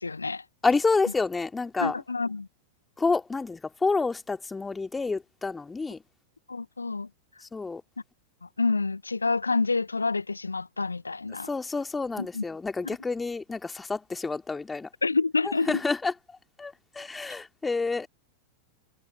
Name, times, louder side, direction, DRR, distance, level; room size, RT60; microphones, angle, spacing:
voice 1, 0.0-0.4 1.8-2.5 6.5-7.1 8.4-11.5 12.2-12.4 12.8-13.0 15.0-15.8, left 3 dB, 80° left, 1.1 m, -28 dB
voice 2, 0.6-1.9 3.0-6.0 7.5-7.8 11.5-14.9 15.7-16.1 16.6-18.1, left 4 dB, 10° left, 2.7 m, -28 dB
figure-of-eight pair, 90°, 0 cm